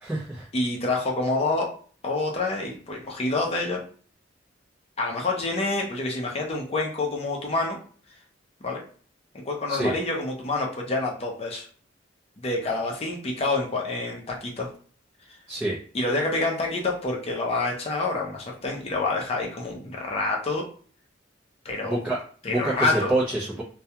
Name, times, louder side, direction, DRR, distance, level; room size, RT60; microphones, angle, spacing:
voice 1, 0.0-0.5 9.7-9.9 15.5-15.8 21.8-23.6, right 2 dB, 10° right, -8 dB, 0.5 m, -27 dB
voice 2, 0.5-1.7 2.0-3.8 5.0-7.8 8.6-8.8 9.3-11.7 12.4-14.7 15.9-20.7 21.6-22.0 22.4-23.1, left 2 dB, 35° left, -1 dB, 0.6 m, -27 dB
2.3 x 2.2 x 2.8 m, 0.43 s
head